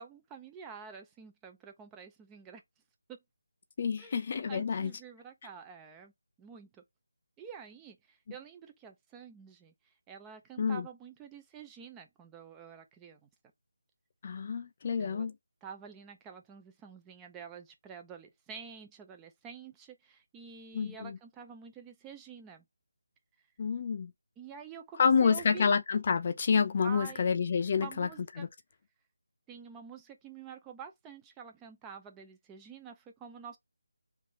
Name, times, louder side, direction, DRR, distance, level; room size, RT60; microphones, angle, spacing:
voice 1, 0.0-2.6 3.1-3.2 4.0-6.1 6.4-6.8 7.4-9.7 10.1-13.3 15.0-15.3 15.6-22.7 24.4-25.7 26.8-27.2 27.7-28.5 29.5-33.6, right 6 dB, 10° right, 0.5 m, -48 dB
voice 2, 3.8-4.9 10.6-10.9 14.2-15.3 20.7-21.2 23.6-24.1 25.0-28.1 28.4-28.5, left 6 dB, 35° left, 0.6 m, -28 dB
3.5 x 3.3 x 4.0 m
figure-of-eight pair, 165°, 0 cm